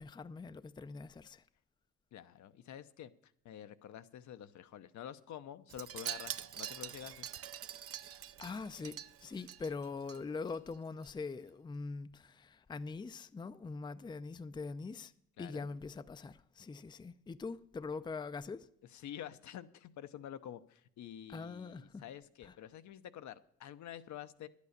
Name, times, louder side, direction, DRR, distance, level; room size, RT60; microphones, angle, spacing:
voice 1, 0.0-1.4 8.4-15.1 15.4-18.7 21.3-22.0 22.4-22.5, left 4 dB, 15° left, 0.4 m, -43 dB
voice 2, 2.1-3.1 3.4-7.3 15.4-15.7 18.9-24.5, left 10 dB, 70° left, 0.7 m, -48 dB
Wind chime, 5.7-10.2 10.5-10.8 11.0-11.1, right 10 dB, 50° right, 0.6 m, -45 dB
11.0 x 8.4 x 6.5 m
cardioid pair, 90°, 30 cm